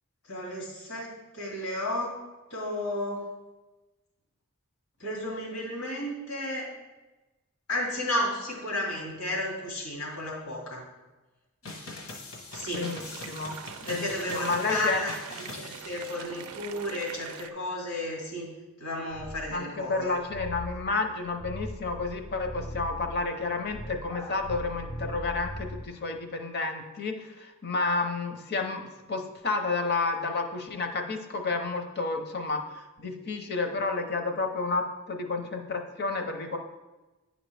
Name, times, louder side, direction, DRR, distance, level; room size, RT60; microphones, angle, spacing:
voice 1, 0.3-2.1 2.5-3.2 5.0-6.7 7.7-10.8 12.5-12.9 13.8-18.5 18.8-20.2, left 1 dB, 85° left, -3 dB, 2.4 m, -33 dB
sound 1, 11.6-16.6, left 2 dB, 70° left, 1.3 m, -42 dB
sound 2, 12.5-17.5, right 8 dB, 85° right, 0.4 m, -44 dB
voice 2, 12.7-13.5 13.8-15.0 19.5-28.8 29.1-36.6, left 3 dB, 50° left, 5 dB, 0.8 m, -31 dB
sound 3, 19.1-26.0, equal, 20° left, 0.4 m, -40 dB
9.5 x 5.1 x 3.4 m, 1.1 s
head